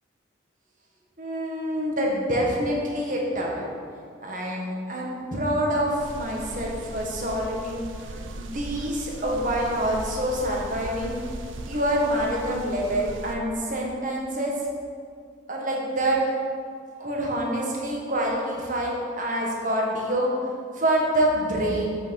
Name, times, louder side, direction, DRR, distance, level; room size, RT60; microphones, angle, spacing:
voice 1, 1.2-3.7 4.2-7.8 8.4-11.2 11.7-14.7 15.5-16.3 17.0-20.3 20.7-22.0, right 1 dB, 40° right, -2 dB, 1.7 m, -26 dB
sound 1, 6.0-13.3, right 2 dB, 80° right, 0.7 m, -38 dB
8.6 x 6.2 x 6.5 m, 2.2 s
head